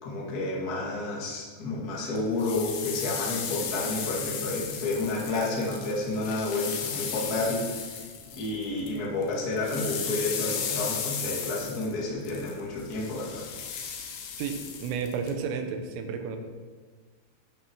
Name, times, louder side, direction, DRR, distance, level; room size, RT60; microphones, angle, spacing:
voice 1, 0.0-8.0 8.4-13.4, left 2 dB, 55° left, -5 dB, 1.0 m, -30 dB
sound 1, 2.2-9.0 9.2-15.3, left 7 dB, 75° left, 3.6 m, -35 dB
voice 2, 14.4-16.4, right 6 dB, 80° right, 5 dB, 3.6 m, -32 dB
11.5 x 6.1 x 6.3 m, 1.5 s
omnidirectional pair, 5.9 m